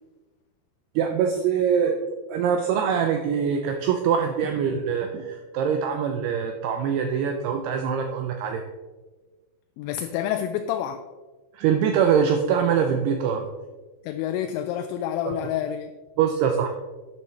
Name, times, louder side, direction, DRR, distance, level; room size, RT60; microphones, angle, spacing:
voice 1, 1.0-2.0 2.3-8.6 11.5-13.5 15.2-15.3 16.2-16.7, right 7 dB, 80° right, 4 dB, 2.4 m, -23 dB
voice 2, 9.8-11.0 14.0-15.9, left 10 dB, 85° left, 8 dB, 2.8 m, -28 dB
12.0 x 9.0 x 3.3 m, 1.3 s
omnidirectional pair, 5.2 m